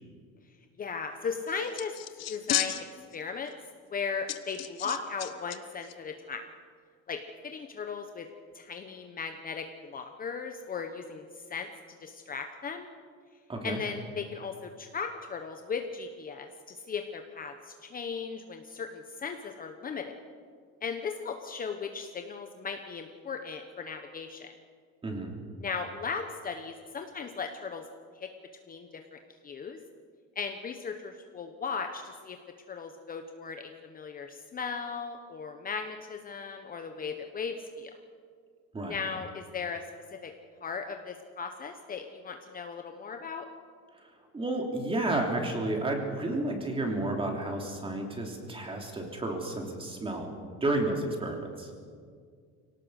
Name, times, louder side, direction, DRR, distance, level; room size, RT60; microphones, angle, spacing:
voice 1, 0.8-1.9 2.3-2.9 3.1-3.5 3.9-6.4 7.1-7.2 7.4-8.3 8.5-11.7 12.0-12.9 13.6-20.2 20.8-24.5 25.6-27.9 28.1-28.3 28.7-29.8 30.3-32.4 32.7-37.9 38.9-39.8 40.1-40.3 40.6-43.5, left 5 dB, 30° left, 5 dB, 1.0 m, -37 dB
sound 1, 1.5-3.2 3.5-3.6 4.3-5.6 5.8-5.9, left 13 dB, 55° left, 1.1 m, -33 dB
voice 2, 44.0-50.3 50.6-51.7, right 2 dB, 20° right, 1 dB, 3.2 m, -31 dB
24.5 x 18.0 x 6.5 m, 2.1 s
cardioid pair, 145°, 30 cm